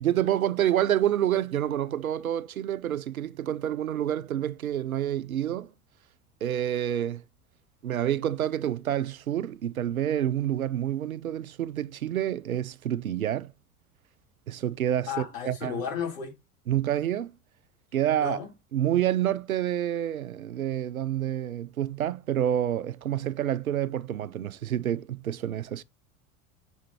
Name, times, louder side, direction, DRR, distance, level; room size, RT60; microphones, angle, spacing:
voice 1, 0.0-5.7 6.4-7.2 7.8-13.5 14.5-15.8 16.7-17.3 17.9-18.4 18.7-25.8, right 11 dB, 85° right, 0.6 m, -28 dB
voice 2, 15.1-16.3 18.2-18.5, left 7 dB, 70° left, 3.3 m, -33 dB
7.1 x 4.9 x 2.8 m
figure-of-eight pair, 75°, 41 cm